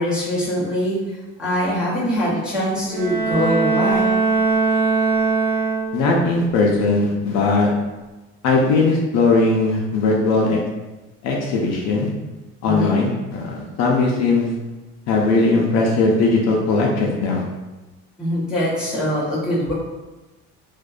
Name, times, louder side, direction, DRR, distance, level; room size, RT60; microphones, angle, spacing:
voice 1, 0.0-4.2 12.6-13.0 18.2-19.7, equal, 5° right, -9 dB, 0.7 m, -23 dB
Bowed string instrument, 2.9-6.3, right 4 dB, 65° right, 0.7 m, -20 dB
voice 2, 5.9-7.7 8.4-10.6 11.2-12.1 12.6-14.5 15.1-17.4, left 3 dB, 55° left, -1 dB, 0.5 m, -19 dB
2.5 x 2.1 x 2.3 m, 1.1 s
cardioid pair, 150°, 31 cm